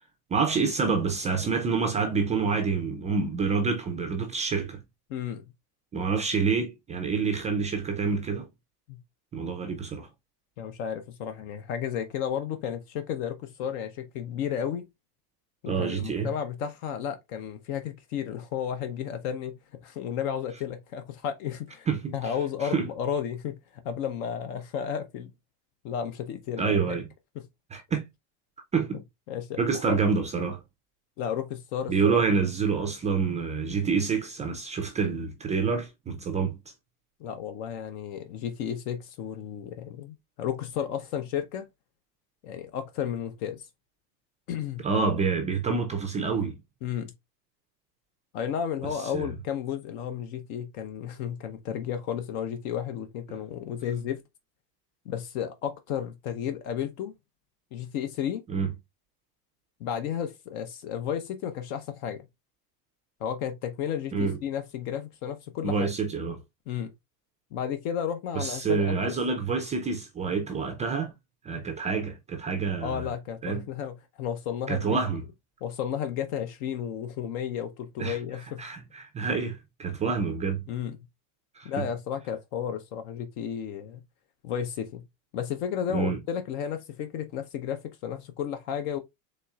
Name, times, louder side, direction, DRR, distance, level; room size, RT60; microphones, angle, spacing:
voice 1, 0.3-4.8 5.9-8.5 9.3-10.1 15.7-16.3 21.9-22.1 22.6-22.9 26.6-27.0 27.7-28.1 28.7-29.0 29.6-30.6 31.9-36.6 44.8-46.6 49.1-49.3 58.5-58.7 64.1-64.4 65.6-66.4 68.3-71.1 71.4-73.1 73.4-73.6 74.7-75.2 78.0-78.2 78.6-80.6 81.6-81.9 85.9-86.2, right 5 dB, 15° right, 0.3 m, -27 dB
voice 2, 5.1-5.5 8.9-9.0 10.6-14.8 15.6-21.9 22.1-25.3 25.8-27.0 29.3-30.0 31.2-32.2 37.2-41.7 42.4-43.7 44.5-44.8 46.8-47.1 48.3-54.2 55.1-57.1 57.7-58.4 59.8-62.2 63.2-65.9 66.7-66.9 67.5-69.1 72.8-75.2 75.6-78.6 80.7-81.0 81.6-84.0 84.4-85.1 85.3-89.0, left 8 dB, 65° left, 0.8 m, -33 dB
4.2 x 3.2 x 2.3 m
supercardioid pair, 120°, 46 cm